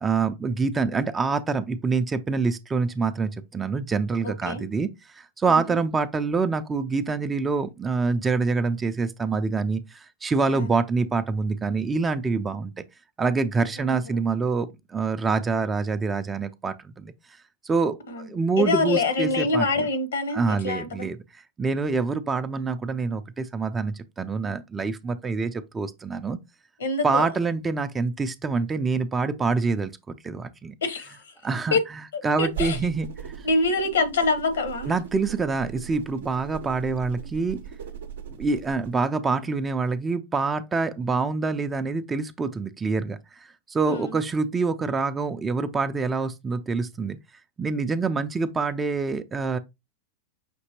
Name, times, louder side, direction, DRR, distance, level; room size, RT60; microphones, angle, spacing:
voice 1, 0.0-12.8 13.2-17.1 17.6-19.9 20.3-26.4 27.0-29.9 30.2-30.7 31.4-31.8 32.2-33.5 34.8-37.6 38.4-47.2 47.6-49.6, right 4 dB, 15° right, 0.4 m, -26 dB
voice 2, 4.2-4.6 5.5-5.8 10.5-10.7 13.8-14.2 18.1-18.3 18.6-21.1 26.8-27.3 30.8-31.2 31.7-31.8 32.4-32.8 33.4-34.9 43.9-44.2, left 3 dB, 65° left, 0.9 m, -26 dB
sound 1, 32.5-39.0, right 8 dB, 60° right, 0.6 m, -38 dB
6.0 x 2.8 x 2.8 m
figure-of-eight pair, 90°, 0 cm